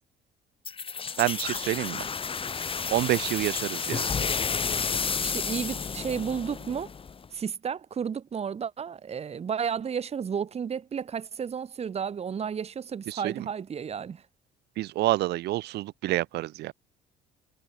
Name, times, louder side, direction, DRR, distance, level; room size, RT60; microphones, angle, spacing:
sound 1, 0.6-7.3, left 5 dB, 30° left, 6.3 m, -31 dB
voice 1, 1.2-2.0 2.9-4.1 13.1-13.5 14.8-16.7, right 16 dB, 80° right, 3.5 m, -28 dB
voice 2, 5.2-6.9 7.3-14.2, right 7 dB, 40° right, 2.8 m, -32 dB
cardioid pair, 110°, 17 cm